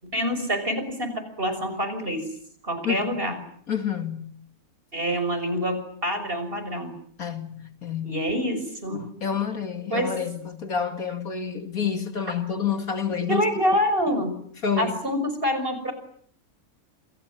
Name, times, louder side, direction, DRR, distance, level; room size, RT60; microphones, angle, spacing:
voice 1, 0.0-2.2 2.6-3.4 4.9-6.9 8.0-9.1 9.9-10.2 13.3-14.4 14.8-15.9, equal, 35° right, 6.2 m, -26 dB
voice 2, 3.7-4.3 7.2-8.3 8.9-13.4 14.6-14.9, left 7 dB, 65° left, 2.6 m, -28 dB
27.5 x 27.5 x 7.4 m
omnidirectional pair, 1.7 m